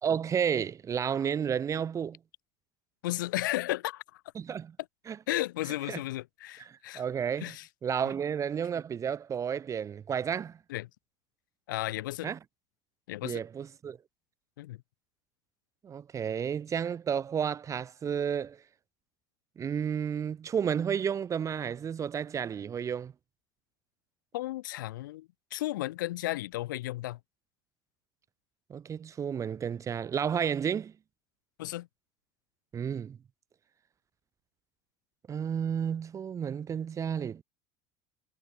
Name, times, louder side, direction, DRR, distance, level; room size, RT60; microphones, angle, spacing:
voice 1, 0.0-2.2 4.4-4.8 5.1-5.2 5.9-6.0 6.7-7.5 7.8-10.6 12.2-12.4 13.2-14.0 15.8-18.6 19.6-23.1 28.7-30.9 32.7-33.2 35.3-37.4, right 7 dB, 30° right, 0.9 m, -32 dB
voice 2, 3.0-4.2 5.3-7.0 7.4-7.7 8.0-8.1 10.7-10.9 11.7-12.3 13.1-13.4 14.6-14.8 24.3-27.2 31.6-31.9, left 16 dB, 85° left, 1.5 m, -34 dB
supercardioid pair, 95°, 10 cm